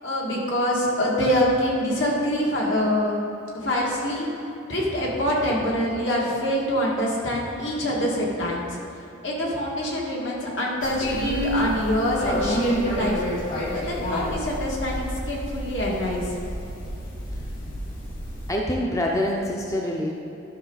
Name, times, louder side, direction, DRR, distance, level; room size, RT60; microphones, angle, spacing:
voice 1, 0.0-3.2 3.5-8.8 9.2-13.2 13.7-16.4, equal, 70° left, -4 dB, 2.0 m, -25 dB
sound 1, 10.8-18.5, equal, 45° left, 1.7 m, -29 dB
voice 2, 18.5-20.1, left 1 dB, 15° left, -1 dB, 0.6 m, -25 dB
12.0 x 6.1 x 4.0 m, 2.9 s
head